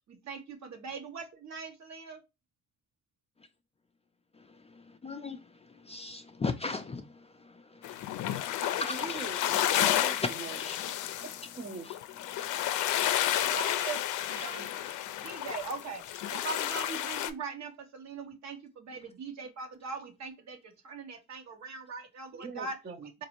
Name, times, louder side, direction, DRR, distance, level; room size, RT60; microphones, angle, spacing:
voice 1, 0.1-2.2 13.3-14.0 14.3-14.8 15.2-16.0 16.3-22.7, right 4 dB, 65° right, 1.1 m, -41 dB
voice 2, 4.3-9.6 10.2-10.8 11.0-11.5 11.8-11.9 12.3-13.6 19.0-19.1, left 3 dB, 20° left, 0.4 m, -40 dB
sound 1, 7.8-17.3, left 12 dB, 80° left, 0.5 m, -31 dB
voice 3, 8.6-10.6 11.5-11.9 22.3-23.1, right 4 dB, 35° right, 0.7 m, -41 dB
4.0 x 2.6 x 2.8 m
cardioid pair, 90°, 30 cm